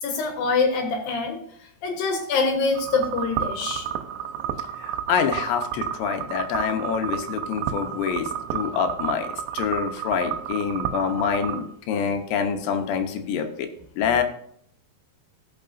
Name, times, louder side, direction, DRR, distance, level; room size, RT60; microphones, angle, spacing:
voice 1, 0.0-1.4 1.8-3.9, left 4 dB, 65° left, 4 dB, 2.6 m, -24 dB
Strange Texture, 2.8-11.6, right 9 dB, 85° right, 3.0 m, -31 dB
voice 2, 4.8-13.7 14.0-14.2, left 7 dB, 85° left, 6 dB, 3.2 m, -26 dB
16.5 x 6.6 x 2.6 m, 0.68 s
omnidirectional pair, 5.0 m